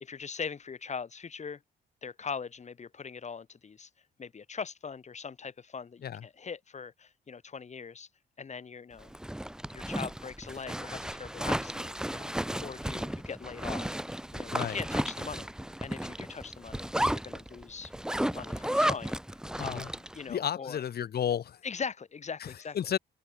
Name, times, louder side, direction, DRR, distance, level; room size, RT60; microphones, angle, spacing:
voice 1, 0.0-1.6 2.0-3.9 4.2-8.1 8.4-9.1 9.7-14.0 14.3-15.6 15.8-16.9 17.2-17.9 18.3-19.2 19.6-20.8 21.6-22.8, left 6 dB, 35° left, 1.8 m, -41 dB
Zipper (clothing), 9.0-20.2, right 1 dB, 5° right, 1.2 m, -33 dB
voice 2, 19.6-19.9 20.3-21.6 22.4-23.0, left 9 dB, 50° left, 1.0 m, -32 dB
cardioid pair, 90°, 20 cm